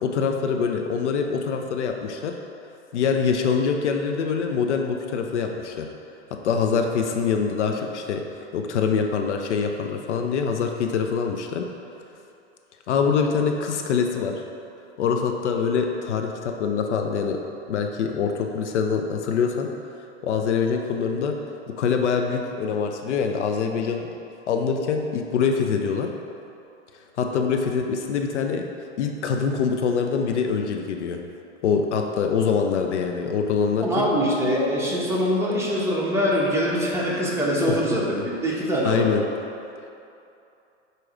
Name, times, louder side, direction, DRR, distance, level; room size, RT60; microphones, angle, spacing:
voice 1, 0.0-2.4 2.9-5.9 6.3-8.2 8.5-11.7 12.9-14.4 15.0-17.4 17.7-19.7 20.2-21.4 21.7-24.1 24.5-26.1 27.2-28.7 29.0-31.2 31.6-34.1 38.8-39.2, left 6 dB, 75° left, 3 dB, 0.7 m, -24 dB
voice 2, 33.8-39.1, equal, 5° right, -5 dB, 1.3 m, -23 dB
7.8 x 3.1 x 4.8 m, 2.7 s
hypercardioid pair, 105°, 35 cm